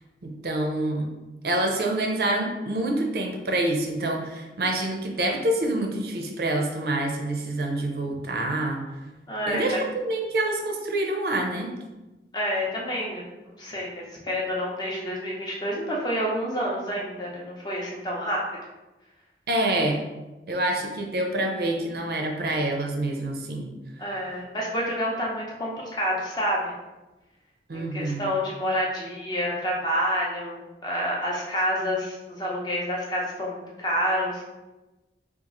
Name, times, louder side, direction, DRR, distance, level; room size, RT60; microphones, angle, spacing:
voice 1, 0.2-1.1 1.4-8.8 9.5-11.7 19.5-20.0 20.5-23.7 27.7-28.3, right 1 dB, 60° right, 2 dB, 0.5 m, -27 dB
voice 2, 9.3-9.8 12.3-18.4 24.0-26.7 27.7-34.4, equal, 25° left, -3 dB, 0.6 m, -28 dB
3.0 x 2.4 x 3.7 m, 1.1 s
head